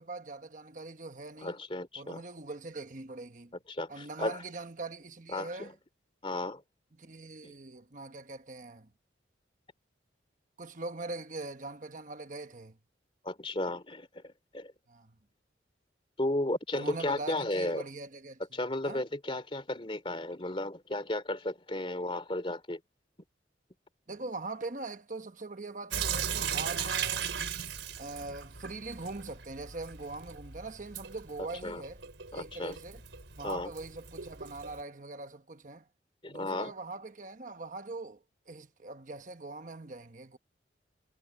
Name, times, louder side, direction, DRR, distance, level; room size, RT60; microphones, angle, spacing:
voice 1, 0.0-1.6 2.0-3.5 3.9-5.7 6.3-6.4 7.0-8.9 10.6-12.8 14.9-15.1 16.7-18.4 18.8-19.0 24.1-27.3 28.0-32.0 32.3-33.0 33.4-35.8 36.3-40.4, right 3 dB, 45° right, 1.2 m, -42 dB
voice 2, 1.4-2.2 3.7-4.4 5.3-5.7 6.2-6.6 7.4-7.5 13.2-14.7 16.2-17.9 18.5-22.8 31.6-31.8 32.3-32.8 33.4-33.7 36.2-36.7, left 1 dB, 30° left, 2.8 m, -34 dB
Sink (filling or washing) / Drip, 25.9-34.8, right 7 dB, 85° right, 3.9 m, -37 dB
head